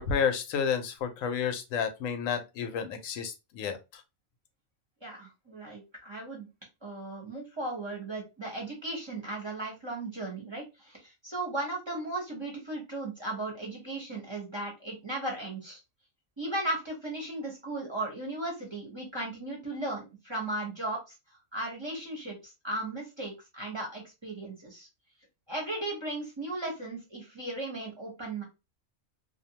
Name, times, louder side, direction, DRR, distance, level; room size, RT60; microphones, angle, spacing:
voice 1, 0.0-4.0, left 7 dB, 85° left, 7 dB, 1.0 m, -31 dB
voice 2, 5.0-6.5 6.8-15.8 16.4-21.2 21.5-24.9 25.5-28.4, right 2 dB, 25° right, -2 dB, 0.7 m, -36 dB
2.5 x 2.1 x 2.8 m, 0.26 s
omnidirectional pair, 1.3 m